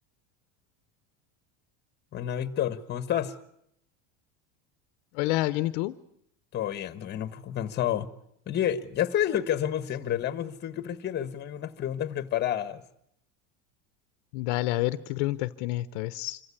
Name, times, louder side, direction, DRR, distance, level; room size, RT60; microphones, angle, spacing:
voice 1, 2.1-3.3 6.5-8.1 8.5-12.8, left 10 dB, 30° left, 1.3 m, -29 dB
voice 2, 5.1-6.0 14.3-16.4, left 17 dB, 70° left, 0.9 m, -28 dB
26.0 x 15.5 x 9.9 m
cardioid pair, 150°, 35 cm